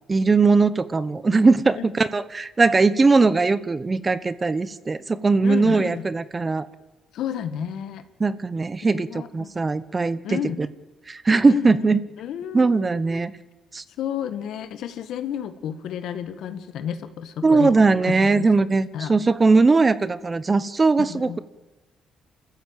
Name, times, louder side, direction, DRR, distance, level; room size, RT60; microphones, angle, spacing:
voice 1, 0.1-6.7 8.2-10.4 11.1-12.0 12.5-13.3 13.7-13.8 17.4-21.4, right 3 dB, 25° right, 16 dB, 1.0 m, -20 dB
voice 2, 5.4-6.1 7.1-8.0 8.9-9.5 10.2-10.6 11.5-13.0 14.0-17.7 18.0-18.5 18.9-19.1 21.0-21.4, left 9 dB, 80° left, 10 dB, 1.8 m, -31 dB
27.5 x 14.5 x 9.0 m, 1.1 s
cardioid pair, 90°, 0 cm